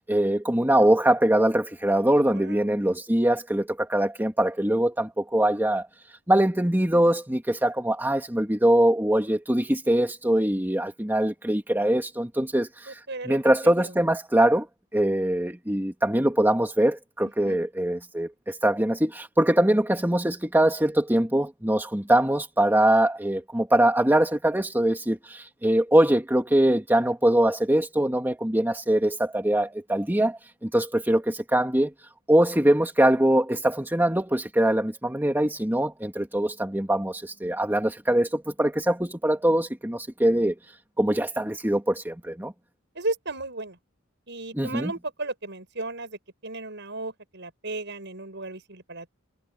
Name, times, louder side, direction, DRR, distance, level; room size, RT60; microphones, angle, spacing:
voice 1, 0.1-5.9 6.3-14.7 14.9-31.9 32.3-40.6 41.0-42.5 44.5-44.9, right 1 dB, 10° right, 2.2 m, -23 dB
voice 2, 2.2-2.8 12.9-13.4 17.4-17.6 42.9-43.8 44.3-49.1, right 2 dB, 60° right, 7.8 m, -35 dB
head